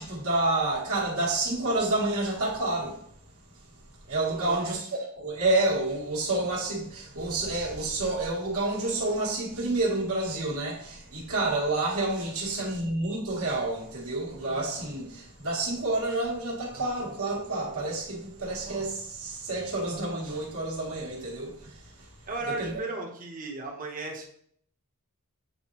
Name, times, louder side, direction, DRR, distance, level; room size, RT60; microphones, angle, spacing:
voice 1, 0.0-3.1 4.1-4.8 5.1-22.1 22.5-22.7, right 2 dB, 70° right, 1.7 m, -29 dB
voice 2, 4.3-4.7 22.3-24.3, right 3 dB, 40° right, 1.1 m, -35 dB
7.9 x 4.0 x 3.1 m
head